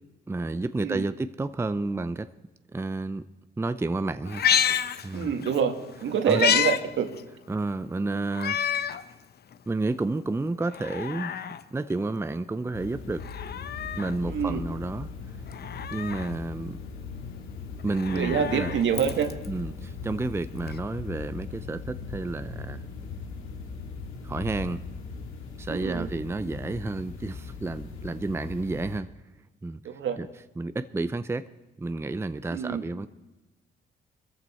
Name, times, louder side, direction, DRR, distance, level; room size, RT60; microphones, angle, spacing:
voice 1, 0.3-2.3 2.7-3.2 3.6-4.4 5.0-5.3 6.3-6.4 7.5-8.6 9.7-11.3 11.7-13.2 14.0-15.1 15.9-16.8 17.8-18.7 19.5-22.8 24.2-24.8 25.6-29.1 29.6-29.8 30.2-30.3 30.6-31.5 31.8-33.1, right 2 dB, 15° right, 12 dB, 0.6 m, -30 dB
Meow, 4.3-5.6 5.9-6.8 7.2-7.3 8.3-9.0 9.5-9.6 10.6-11.6 13.1-14.1 15.5-16.3 17.8-19.5 20.7-20.8, left 8 dB, 55° left, 0.8 m, -29 dB
voice 2, 5.1-5.7 6.0-7.1 14.3-14.6 18.1-19.3 25.7-26.1 29.8-30.2 32.5-32.8, right 7 dB, 70° right, 6 dB, 1.9 m, -26 dB
sound 1, 12.7-29.0, left 5 dB, 85° left, 2.5 m, -39 dB
21.5 x 14.5 x 4.4 m, 1.1 s
cardioid pair, 90°, 20 cm